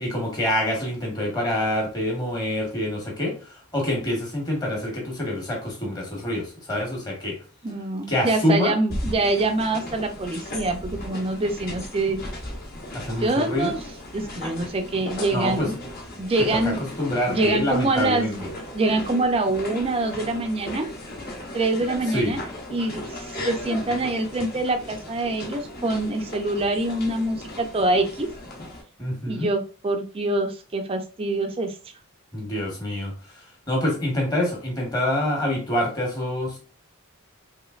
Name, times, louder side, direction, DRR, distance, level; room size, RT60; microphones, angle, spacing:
voice 1, 0.0-7.4 8.1-8.7 12.9-13.7 15.3-15.7 16.4-18.5 22.1-22.3 29.0-29.5 32.3-36.6, left 1 dB, 15° left, 0 dB, 1.0 m, -26 dB
voice 2, 7.6-12.2 13.2-13.8 14.1-15.7 16.2-16.8 17.3-18.4 18.7-20.9 21.5-22.4 22.7-28.3 29.3-31.8, right 2 dB, 25° right, 5 dB, 0.4 m, -25 dB
sound 1, 8.9-28.8, left 1 dB, 40° left, 0.8 m, -36 dB
3.1 x 3.0 x 2.4 m, 0.37 s
head